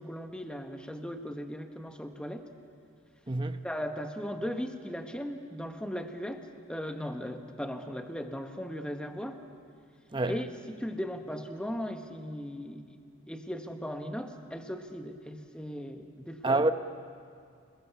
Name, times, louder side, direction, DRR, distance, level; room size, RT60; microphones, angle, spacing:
voice 1, 0.0-2.4 3.6-9.4 10.3-12.8 13.3-16.7, equal, 5° left, 1.3 m, -37 dB
voice 2, 3.3-3.6 10.1-10.3 16.4-16.7, right 2 dB, 20° right, 0.8 m, -26 dB
30.0 x 21.0 x 6.9 m
head